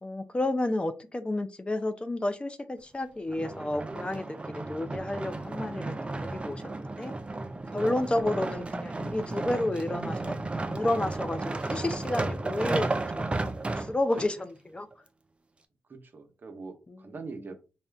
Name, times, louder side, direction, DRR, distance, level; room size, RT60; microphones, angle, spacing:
voice 1, 0.0-5.9 6.2-7.1 7.7-10.3 10.7-12.9 13.2-13.4 13.8-14.9 16.9-17.0, left 1 dB, 25° left, 0.5 m, -31 dB
sound 1, 3.3-14.3 14.9-15.0, right 2 dB, 25° right, 0.5 m, -33 dB
voice 2, 15.9-17.6, right 4 dB, 50° right, 0.9 m, -43 dB
4.2 x 2.3 x 3.4 m
cardioid pair, 65°, 4 cm